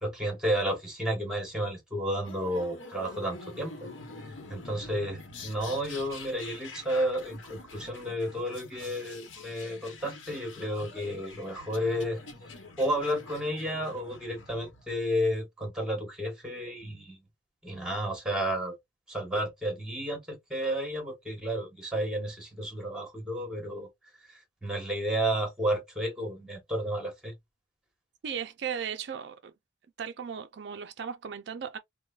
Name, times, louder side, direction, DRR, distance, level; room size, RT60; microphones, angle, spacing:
voice 1, 0.0-3.9 4.5-12.2 12.8-17.2 17.6-18.8 19.1-23.9 24.6-27.3, equal, 5° right, 1.1 m, -32 dB
sound 1, 2.2-15.0, left 3 dB, 85° left, 0.9 m, -46 dB
voice 2, 28.2-29.5 30.0-31.8, right 7 dB, 60° right, 0.3 m, -36 dB
4.6 x 2.1 x 2.3 m
head